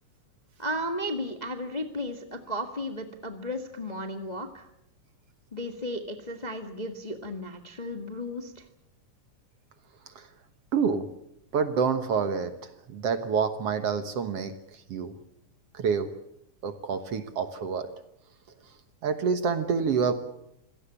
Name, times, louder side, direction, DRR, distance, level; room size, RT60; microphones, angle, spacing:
voice 1, 0.6-4.7 5.5-8.6, equal, 20° left, 5 dB, 1.1 m, -34 dB
voice 2, 10.7-11.1 11.5-12.6 12.9-14.5 14.9-15.1 15.7-16.1 16.6-17.9 19.0-20.1, right 6 dB, 60° right, 9 dB, 2.0 m, -27 dB
26.0 x 17.0 x 8.5 m, 0.80 s
omnidirectional pair, 3.6 m